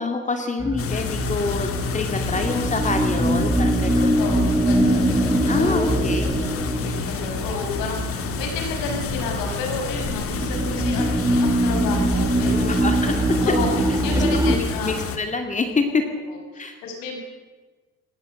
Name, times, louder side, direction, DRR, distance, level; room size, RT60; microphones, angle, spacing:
voice 1, 0.0-4.2 5.4-6.3 12.4-13.6 14.1-16.0 16.6-16.8, left 3 dB, 20° left, 5 dB, 2.3 m, -26 dB
sound 1, 0.6-14.6, right 1 dB, 10° right, 1.6 m, -23 dB
sound 2, 0.8-15.2, left 6 dB, 45° left, 1.9 m, -30 dB
voice 2, 2.1-2.6 4.1-5.3 5.6-6.0 6.8-12.8 13.4-13.7 14.0-14.9 16.3-17.2, left 3 dB, 85° left, 2 dB, 6.5 m, -31 dB
19.5 x 17.0 x 7.8 m, 1.3 s
cardioid pair, 125°, 33 cm